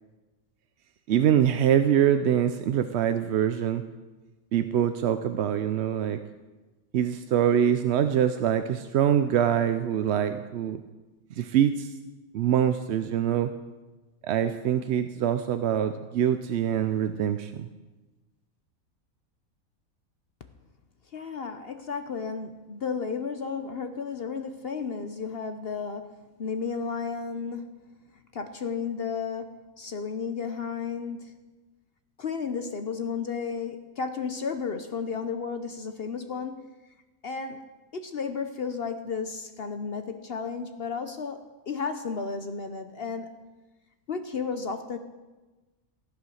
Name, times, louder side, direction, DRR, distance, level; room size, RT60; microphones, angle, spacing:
voice 1, 1.1-3.8 4.5-6.2 6.9-10.8 11.4-11.9 12.3-13.5 14.2-17.7, right 9 dB, 65° right, 9 dB, 0.7 m, -24 dB
voice 2, 21.1-27.9 28.3-31.4 32.2-36.6 37.2-37.6 37.9-43.3 44.1-45.0, left 5 dB, 50° left, 8 dB, 0.9 m, -33 dB
15.0 x 8.3 x 6.3 m, 1.2 s
omnidirectional pair, 1.5 m